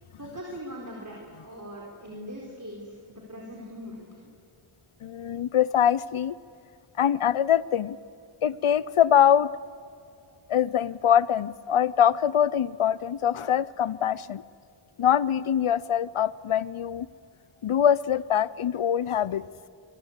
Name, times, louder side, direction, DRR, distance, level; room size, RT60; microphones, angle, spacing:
voice 1, 0.2-1.2 1.4-4.2, equal, 35° right, -1 dB, 4.6 m, -41 dB
voice 2, 5.0-6.3 7.0-8.0 8.4-9.5 10.5-14.4 15.0-17.1 17.6-19.4, left 9 dB, 75° left, 19 dB, 0.7 m, -23 dB
25.5 x 22.5 x 8.2 m, 2.5 s
wide cardioid pair, 55°, 50 cm